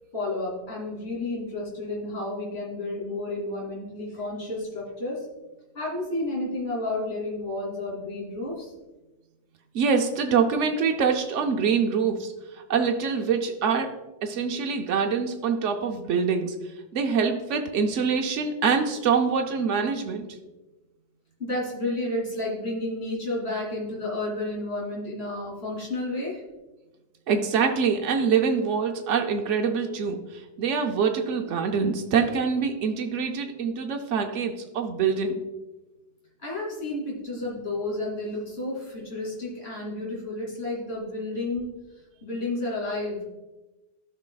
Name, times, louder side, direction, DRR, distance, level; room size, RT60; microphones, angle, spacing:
voice 1, 0.1-5.2 5.7-8.7 21.4-26.4 36.4-41.7 42.2-43.2, left 2 dB, 60° left, -5 dB, 2.9 m, -31 dB
voice 2, 9.7-13.9 14.2-16.6 16.9-20.3 27.3-35.5, right 6 dB, 90° right, 4 dB, 1.0 m, -25 dB
13.5 x 5.7 x 2.3 m, 1.1 s
omnidirectional pair, 1.2 m